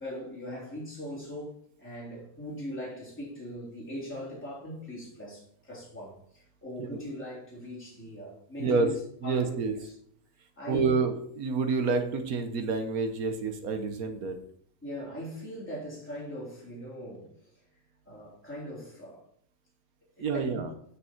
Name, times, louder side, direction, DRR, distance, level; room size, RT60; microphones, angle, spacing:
voice 1, 0.0-9.0 9.2-9.5 9.8-9.9 10.6-11.0 14.8-17.5 18.1-19.2 20.2-20.6, equal, 5° left, 3.4 m, -40 dB
voice 2, 9.2-9.7 10.7-14.4 20.2-20.7, right 4 dB, 70° right, 1.4 m, -28 dB
9.0 x 6.8 x 4.5 m
omnidirectional pair, 1.6 m